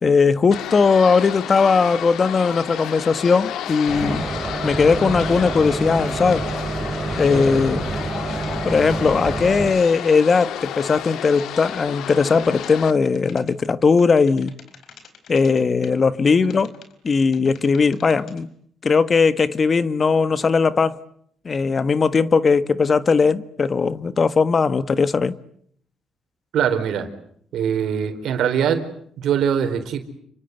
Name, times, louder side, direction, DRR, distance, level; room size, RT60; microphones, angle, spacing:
voice 1, 0.0-4.3 4.6-6.5 7.2-7.9 8.6-14.5 15.3-16.7 17.0-18.5 18.8-21.0 21.4-25.4, left 5 dB, 40° left, 1.4 m, -18 dB
sound 1, 0.5-12.9, left 11 dB, 85° left, 1.6 m, -32 dB
sound 2, 2.2-2.3 4.2-7.7 7.9-8.6 8.9-12.8 13.1-13.6 14.0-16.0 16.3-18.4, left 7 dB, 65° left, 4.6 m, -48 dB
Bus, 3.9-9.7, right 3 dB, 30° right, 7.7 m, -28 dB
voice 2, 26.5-27.1 27.5-28.9 29.2-30.0, right 8 dB, 75° right, 4.2 m, -22 dB
29.5 x 24.5 x 8.2 m
cardioid pair, 90°, 0 cm